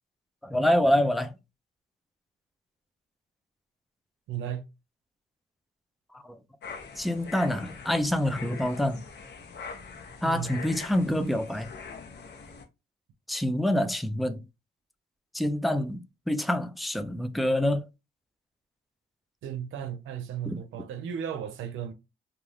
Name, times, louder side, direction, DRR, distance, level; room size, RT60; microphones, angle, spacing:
voice 1, 0.4-1.3 6.1-6.4 7.0-9.0 10.2-11.7 13.3-14.4 15.3-17.9 20.4-20.6, left 1 dB, ahead, 0.3 m, -26 dB
voice 2, 4.3-4.6 10.2-10.5 19.4-21.9, right 9 dB, 80° right, 0.6 m, -35 dB
sound 1, 6.6-12.6, left 5 dB, 60° left, 0.7 m, -43 dB
2.4 x 2.3 x 3.2 m
cardioid pair, 90°, 20 cm